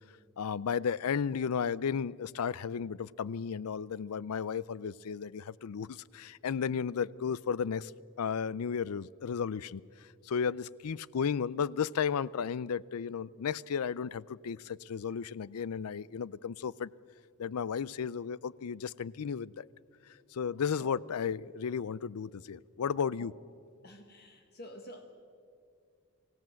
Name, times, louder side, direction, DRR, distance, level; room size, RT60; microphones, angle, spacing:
voice 1, 0.4-7.9 8.2-16.9 17.4-19.7 20.1-23.3, left 6 dB, 85° left, 22 dB, 0.4 m, -34 dB
voice 2, 23.8-25.0, equal, 45° left, 4 dB, 1.6 m, -49 dB
24.5 x 16.5 x 7.7 m, 2.3 s
head